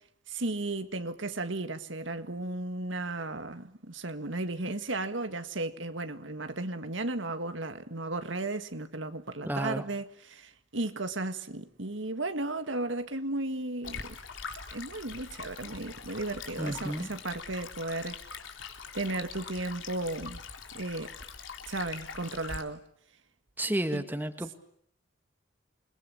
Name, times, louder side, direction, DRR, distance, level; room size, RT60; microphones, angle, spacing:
voice 1, 0.3-14.2 14.7-18.2 18.9-20.4 20.7-21.1 21.7-22.8 23.9-24.0, right 2 dB, 80° right, 1.9 m, -35 dB
voice 2, 9.5-9.9 16.6-17.1 23.6-24.5, right 1 dB, 10° right, 1.8 m, -32 dB
Stream, 13.8-22.6, left 5 dB, 85° left, 3.5 m, -43 dB
29.0 x 22.0 x 8.6 m
head